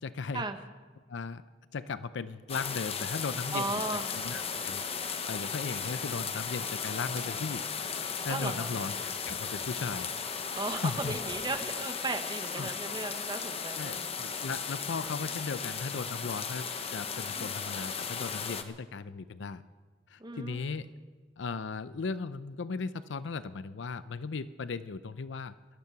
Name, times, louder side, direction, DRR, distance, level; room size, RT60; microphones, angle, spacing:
voice 1, 0.0-0.4 1.1-1.4 1.7-3.8 4.1-4.8 5.3-7.6 8.2-8.9 9.3-10.1 10.7-11.2 12.5-12.7 13.8-16.7 16.9-19.6 20.1-20.9 21.4-25.5, left 4 dB, 75° left, 14 dB, 0.5 m, -37 dB
sound 1, 2.5-18.6, left 6 dB, 30° left, 0.9 m, -36 dB
voice 2, 3.5-4.2 8.3-8.7 10.6-14.4 15.2-15.3 17.3-17.5 20.2-20.7, right 3 dB, 25° right, 7 dB, 1.0 m, -36 dB
sound 2, 4.1-6.2 6.6-8.0 8.3-8.4 9.0-10.2 10.8-11.5, right 2 dB, 85° right, 2.1 m, -55 dB
18.5 x 12.5 x 5.9 m, 1.4 s
head